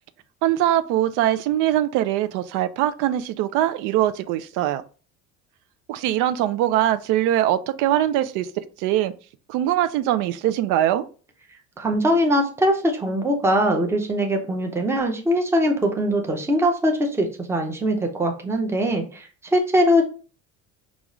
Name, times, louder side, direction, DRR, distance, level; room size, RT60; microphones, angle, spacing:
voice 1, 0.4-4.8 5.9-8.5 8.8-9.1 9.5-11.1, right 12 dB, 85° right, 0.5 m, -22 dB
voice 2, 11.8-20.1, equal, 10° right, 0.5 m, -22 dB
5.1 x 2.4 x 3.0 m
cardioid pair, 155°, 30 cm